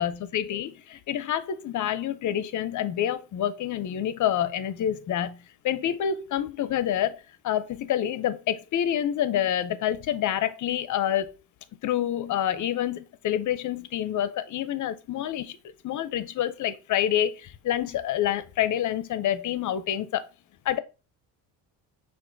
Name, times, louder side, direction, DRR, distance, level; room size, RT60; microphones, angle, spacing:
voice 1, 0.0-5.4 5.6-11.3 11.8-15.6 15.8-20.3 20.7-20.8, left 10 dB, 45° left, 0.5 m, -27 dB
6.0 x 2.5 x 2.6 m
cardioid pair, 115°, 41 cm